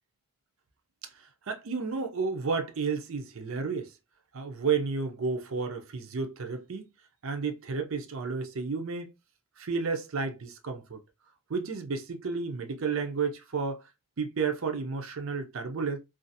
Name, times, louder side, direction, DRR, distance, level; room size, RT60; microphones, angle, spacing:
voice 1, 1.5-3.9 4.3-6.9 7.2-9.1 9.6-11.0 11.5-13.8 14.2-16.0, right 5 dB, 65° right, 0.5 m, -32 dB
2.5 x 2.4 x 2.6 m
head